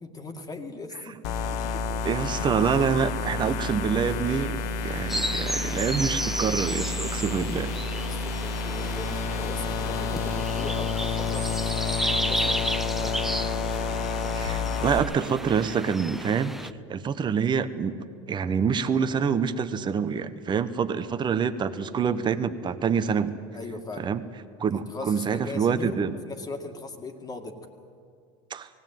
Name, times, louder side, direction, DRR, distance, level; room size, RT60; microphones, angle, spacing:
voice 1, 0.0-1.4 1.7-2.0 7.7-13.2 23.5-24.1 24.7-27.6, left 3 dB, 25° left, 5 dB, 2.1 m, -39 dB
sound 1, 1.2-15.0, left 4 dB, 65° left, 1.3 m, -30 dB
voice 2, 2.0-7.7 14.3-16.5 16.9-18.0 18.3-23.3 24.0-24.2 24.6-26.2 28.5-28.7, right 6 dB, 30° right, 11 dB, 1.1 m, -26 dB
sound 2, 5.1-16.7, right 1 dB, ahead, 0.5 m, -33 dB
18.5 x 17.0 x 9.2 m, 2.3 s
supercardioid pair, 105°, 16 cm